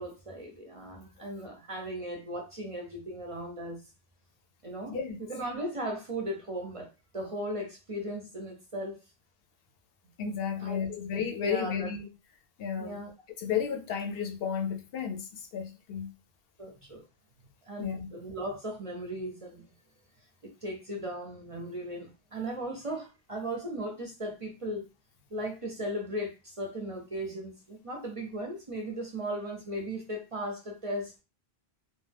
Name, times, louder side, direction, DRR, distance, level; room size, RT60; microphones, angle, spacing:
voice 1, 0.0-3.8 4.6-9.0 10.6-11.1 11.3-11.9 12.8-13.1 16.6-17.0 17.6-19.7 20.4-24.8 25.3-31.1, equal, 40° right, 0.5 m, -37 dB
voice 2, 4.9-5.2 10.2-12.1 12.6-13.0 13.4-16.1 17.8-18.1, left 7 dB, 70° left, 0.7 m, -33 dB
2.4 x 2.1 x 3.3 m
omnidirectional pair, 1.0 m